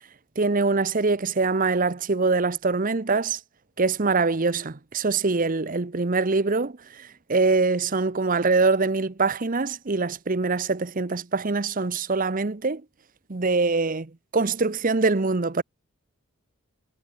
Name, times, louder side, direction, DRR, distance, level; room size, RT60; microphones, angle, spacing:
voice 1, 0.4-3.4 3.8-12.8 13.3-15.6, right 3 dB, 40° right, 0.8 m, -24 dB
head